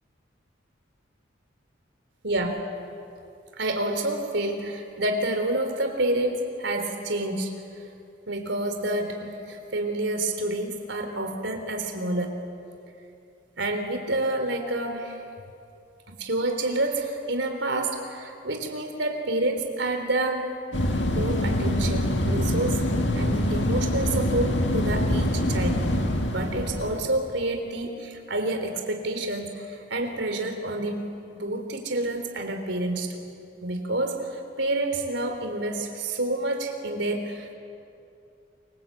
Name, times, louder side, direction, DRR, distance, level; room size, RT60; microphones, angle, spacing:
voice 1, 2.2-2.6 3.6-7.6 8.3-12.4 13.6-15.2 16.1-20.5 21.1-22.9 23.1-25.9 26.3-33.2 33.6-37.5, right 2 dB, 75° right, 5 dB, 3.8 m, -28 dB
sound 1, 20.7-27.0, left 1 dB, 70° left, 2.3 m, -25 dB
28.5 x 24.5 x 8.7 m, 2.5 s
head